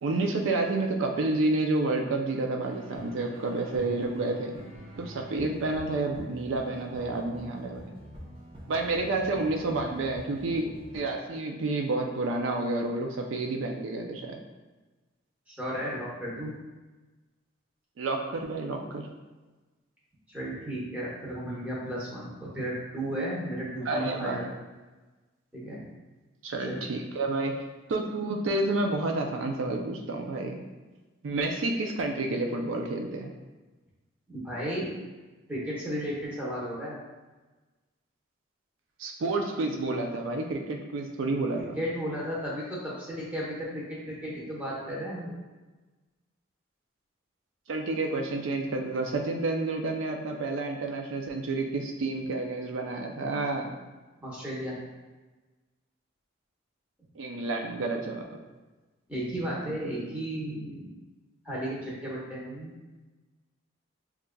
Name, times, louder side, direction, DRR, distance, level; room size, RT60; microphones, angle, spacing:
voice 1, 0.0-4.5 5.0-7.9 8.7-10.7 10.9-14.4 18.0-19.1 23.8-24.4 26.4-27.5 27.9-30.6 31.2-33.3 39.0-41.8 47.7-53.7 57.2-58.2, right 2 dB, 70° right, 2 dB, 0.4 m, -30 dB
sound 1, 2.7-11.0, equal, 25° right, 0.6 m, -46 dB
voice 2, 15.5-16.5 20.3-24.5 25.5-25.8 26.7-26.8 34.3-34.9 35.5-37.0 41.7-45.4 54.2-54.8 59.1-60.9 61.4-62.7, equal, 5° right, -7 dB, 1.0 m, -34 dB
6.4 x 2.4 x 2.2 m, 1.2 s
head